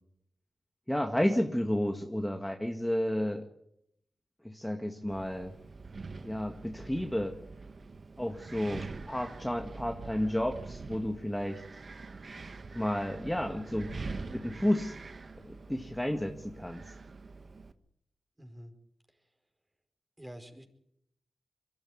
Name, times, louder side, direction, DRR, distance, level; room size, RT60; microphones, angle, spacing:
voice 1, 0.9-3.5 4.4-5.5 6.2-7.3 8.2-11.6 12.7-13.9 14.3-14.9 15.4-16.8, left 1 dB, 10° left, 4 dB, 1.9 m, -31 dB
Wind, 5.1-17.7, right 3 dB, 55° right, 1.3 m, -45 dB
voice 2, 18.4-18.7 20.2-20.7, equal, 20° right, 4 dB, 5.0 m, -47 dB
22.5 x 13.5 x 9.4 m, 0.76 s
cardioid pair, 45°, 0 cm